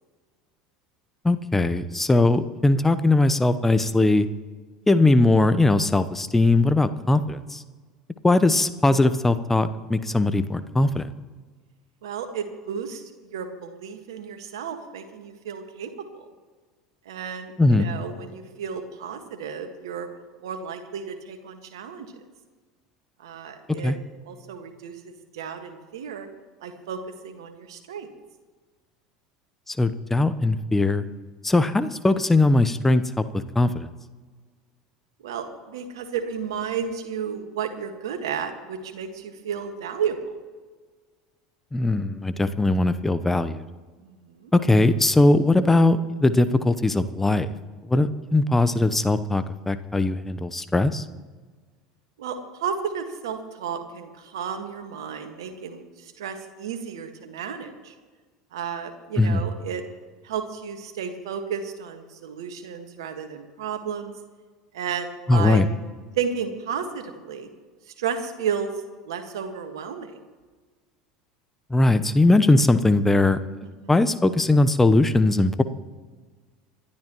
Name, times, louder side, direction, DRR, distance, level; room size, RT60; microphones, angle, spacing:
voice 1, 1.2-4.3 4.9-7.6 8.2-11.1 17.6-17.9 23.8-24.0 29.7-31.1 31.4-33.9 41.7-43.6 44.5-47.5 47.9-51.0 59.2-59.4 65.3-65.7 71.7-73.4 73.9-75.6, left 2 dB, 10° left, 12 dB, 0.9 m, -20 dB
voice 2, 12.0-16.3 17.1-20.1 20.4-22.1 23.2-23.9 24.3-24.9 25.3-26.3 26.6-28.1 35.2-40.2 44.0-44.5 52.2-57.9 58.5-59.8 60.2-64.1 64.7-65.6 66.2-67.5 68.0-68.7 69.0-70.2 73.6-74.1, right 7 dB, 70° right, 6 dB, 1.7 m, -33 dB
27.0 x 12.0 x 3.1 m, 1.4 s
figure-of-eight pair, 70°, 3 cm